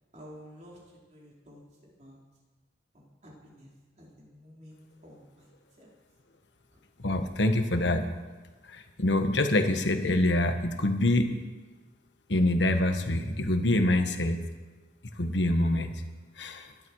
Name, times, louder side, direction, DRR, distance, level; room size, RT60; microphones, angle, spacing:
voice 1, 0.1-2.2 2.9-3.7 4.0-5.5 5.8-5.9, equal, 40° right, -4 dB, 4.4 m, -51 dB
voice 2, 7.0-8.1 9.0-11.3 12.3-14.4 15.2-15.9 16.4-16.7, left 1 dB, 75° left, 7 dB, 1.5 m, -25 dB
22.5 x 12.0 x 4.8 m, 1.3 s
head